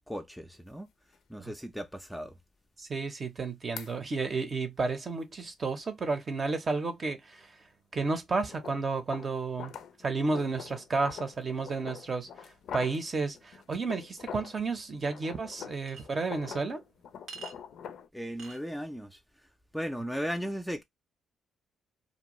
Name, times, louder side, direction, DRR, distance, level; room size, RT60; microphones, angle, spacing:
voice 1, 0.1-0.9 1.3-2.4 18.1-19.2 19.7-20.8, equal, ahead, 0.4 m, -36 dB
sound 1, 0.5-0.6 1.1-1.2 3.8-3.9 8.4-14.6 15.0-18.1, left 8 dB, 70° left, 0.4 m, -45 dB
voice 2, 2.8-7.5 7.9-9.7 10.0-16.8, right 3 dB, 40° right, 0.7 m, -32 dB
Chink clink, 15.9-16.0 17.3-17.6 18.4-18.6, right 5 dB, 70° right, 0.8 m, -44 dB
2.6 x 2.2 x 3.0 m
cardioid pair, 90°, 0 cm